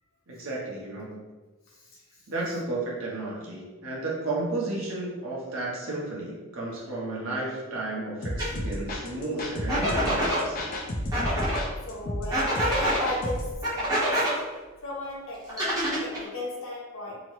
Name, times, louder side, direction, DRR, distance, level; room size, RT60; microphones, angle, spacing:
voice 1, 0.3-1.2 2.3-10.6, right 2 dB, 60° right, -4 dB, 0.8 m, -33 dB
voice 2, 1.7-2.2 11.9-14.4 14.8-17.2, left 1 dB, 60° left, -4 dB, 0.8 m, -36 dB
sound 1, 8.2-13.5, left 1 dB, 40° left, 0.4 m, -32 dB
sound 2, 8.4-8.5 9.7-10.4 11.1-11.6 12.3-13.0 13.6-14.3 15.5-16.3, equal, 15° right, 0.7 m, -26 dB
2.8 x 2.0 x 3.0 m, 1.3 s
head